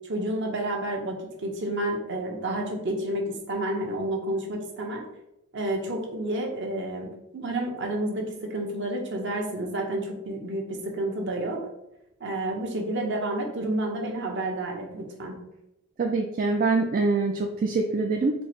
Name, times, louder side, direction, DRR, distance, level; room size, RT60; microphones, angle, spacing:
voice 1, 0.1-5.0 5.5-7.1 7.3-10.7 10.9-11.6 12.2-15.4, right 1 dB, 55° right, 1 dB, 0.8 m, -30 dB
voice 2, 16.0-18.4, right 3 dB, 40° right, 2 dB, 0.3 m, -24 dB
4.5 x 2.0 x 4.4 m, 0.87 s
head